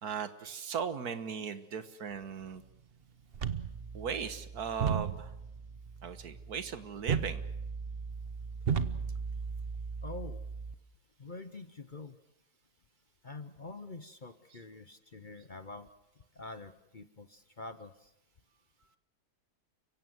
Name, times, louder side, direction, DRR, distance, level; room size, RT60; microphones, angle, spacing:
voice 1, 0.0-2.6 3.9-5.3 6.0-7.4 14.5-14.6, right 7 dB, 75° right, 12 dB, 1.8 m, -37 dB
sound 1, 3.3-10.7, right 6 dB, 45° right, 1.0 m, -36 dB
voice 2, 10.0-10.4 11.2-12.1 13.2-15.9 16.4-18.1, left 3 dB, 35° left, 11 dB, 0.9 m, -46 dB
30.0 x 16.5 x 8.0 m, 0.86 s
omnidirectional pair, 1.7 m